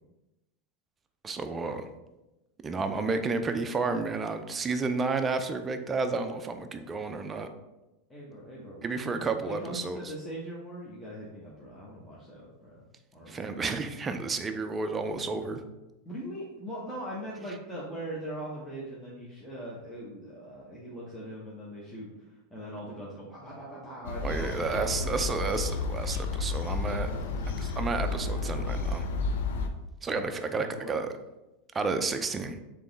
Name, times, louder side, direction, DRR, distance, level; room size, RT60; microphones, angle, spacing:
voice 1, 1.2-1.9 2.6-7.5 8.8-10.1 13.3-15.6 24.2-27.1 27.6-29.0 30.0-31.1 31.7-32.6, right 4 dB, 20° right, 7 dB, 0.4 m, -31 dB
voice 2, 8.1-12.8 13.1-13.5 16.0-22.1 22.5-25.2 26.9-27.6 30.1-31.0, equal, 15° left, -6 dB, 0.9 m, -41 dB
sound 1, 24.0-29.7, left 3 dB, 75° left, 0.5 m, -31 dB
3.6 x 3.0 x 3.9 m, 1.0 s
hypercardioid pair, 115°, 0 cm